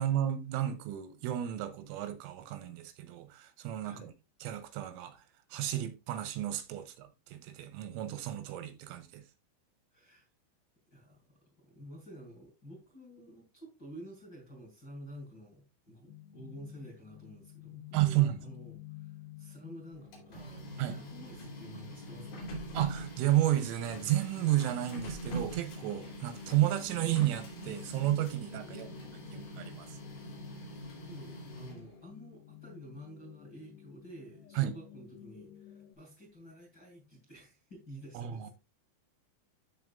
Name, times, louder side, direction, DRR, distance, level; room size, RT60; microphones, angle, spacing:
voice 1, 0.0-4.1 4.4-5.2 5.5-9.2 17.9-18.4 20.8-21.0 22.7-28.9 29.3-30.0 34.6-34.7 38.1-38.5, right 13 dB, 90° right, 3.3 m, -32 dB
voice 2, 9.9-10.3 10.9-11.2 11.6-22.5 28.6-29.5 30.6-30.7 30.9-38.5, equal, 30° left, 2.3 m, -50 dB
sound 1, 16.1-36.0, left 10 dB, 80° left, 2.4 m, -52 dB
Printer, 19.9-32.0, right 1 dB, 55° left, 4.3 m, -44 dB
13.0 x 4.7 x 2.5 m
omnidirectional pair, 5.8 m